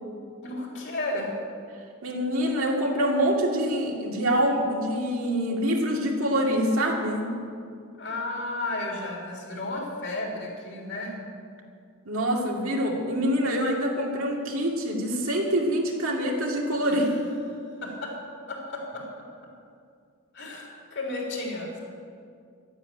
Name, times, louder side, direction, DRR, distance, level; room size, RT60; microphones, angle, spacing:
voice 1, 0.4-1.3 8.0-11.2 16.9-17.1 17.8-18.2 18.5-19.1 20.3-21.8, left 2 dB, 55° left, -1 dB, 3.7 m, -33 dB
voice 2, 2.0-7.3 12.1-17.1, equal, 70° right, -1 dB, 2.5 m, -25 dB
12.5 x 9.8 x 9.2 m, 2.3 s
head